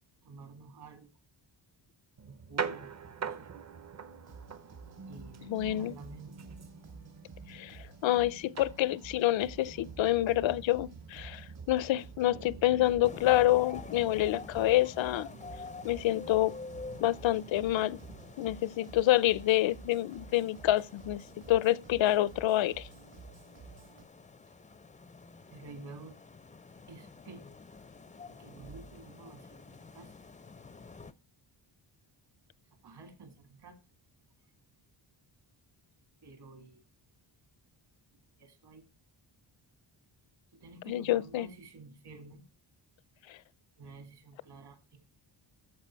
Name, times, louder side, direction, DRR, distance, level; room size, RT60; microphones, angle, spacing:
voice 1, 0.2-1.1 2.2-2.9 3.1-3.5 5.1-6.4 25.5-26.2 26.9-27.5 28.3-30.1 32.8-33.8 36.2-36.8 38.4-38.8 40.5-42.4 43.8-45.0, right 3 dB, 55° right, 2.2 m, -50 dB
sound 1, 2.2-18.3, right 6 dB, 35° right, 0.7 m, -45 dB
sound 2, 4.2-24.0, right 5 dB, 75° right, 3.3 m, -52 dB
voice 2, 5.5-5.9 7.5-15.3 15.8-16.5 17.0-18.0 18.4-22.9 40.9-41.5 43.3-43.4, left 14 dB, 75° left, 0.6 m, -27 dB
sound 3, 13.0-31.1, left 4 dB, 15° left, 0.4 m, -49 dB
13.5 x 4.7 x 4.5 m
wide cardioid pair, 145°, 46 cm